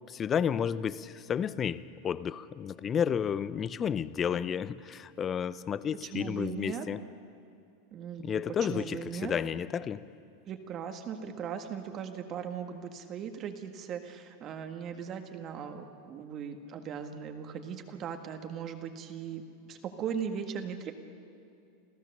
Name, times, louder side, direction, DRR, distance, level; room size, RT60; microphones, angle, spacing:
voice 1, 0.1-7.0 8.2-10.1, left 8 dB, 25° left, 0.6 m, -31 dB
voice 2, 6.0-6.9 7.9-8.4 8.7-9.3 10.4-20.9, right 7 dB, 35° right, 1.7 m, -38 dB
28.0 x 15.0 x 6.7 m
supercardioid pair, 125°, 0 cm